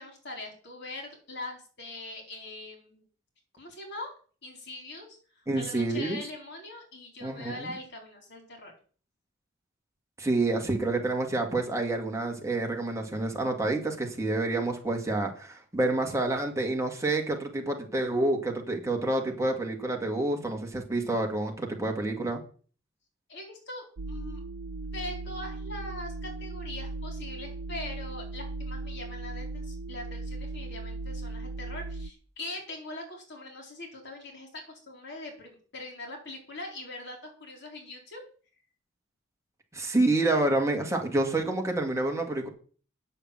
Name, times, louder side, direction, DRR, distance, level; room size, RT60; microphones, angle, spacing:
voice 1, 0.0-3.0 3.6-4.1 4.4-5.1 5.4-8.7 23.3-24.4 24.9-38.2, left 2 dB, 55° left, 2 dB, 4.1 m, -42 dB
voice 2, 5.5-6.2 7.2-7.7 10.2-22.4 39.7-42.5, right 2 dB, 15° right, 2 dB, 2.1 m, -28 dB
sound 1, 24.0-32.1, right 2 dB, 85° right, 0.6 m, -37 dB
9.5 x 6.6 x 7.5 m, 0.41 s
head